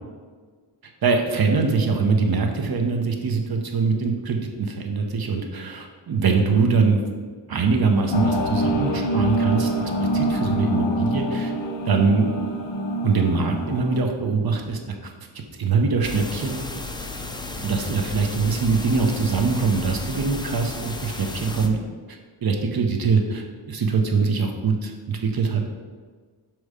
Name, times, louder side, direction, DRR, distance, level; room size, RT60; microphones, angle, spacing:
voice 1, 1.0-7.0 7.5-9.7 10.1-11.5 11.9-12.4 13.0-15.1 15.6-16.6 17.6-21.8 22.4-25.6, right 4 dB, 55° right, 3 dB, 0.8 m, -23 dB
sound 1, 8.1-14.0, right 1 dB, 70° left, 0.9 m, -25 dB
sound 2, 16.0-21.7, left 3 dB, 10° left, 0.3 m, -33 dB
6.5 x 3.1 x 4.8 m, 1.5 s
wide cardioid pair, 120°, 45 cm